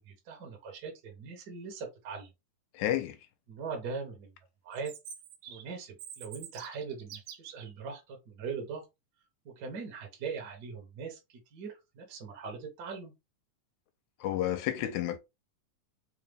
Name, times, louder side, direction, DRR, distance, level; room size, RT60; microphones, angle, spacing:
voice 1, 0.0-2.3 3.5-4.3 4.6-4.9 5.5-8.8 9.4-11.2 11.5-13.1, right 5 dB, 60° right, 1.0 m, -41 dB
voice 2, 2.8-3.2 14.2-15.2, left 12 dB, 85° left, 1.9 m, -30 dB
Chirp tweet, 4.7-7.7, right 8 dB, 85° right, 2.2 m, -47 dB
4.7 x 2.2 x 3.3 m
omnidirectional pair, 3.4 m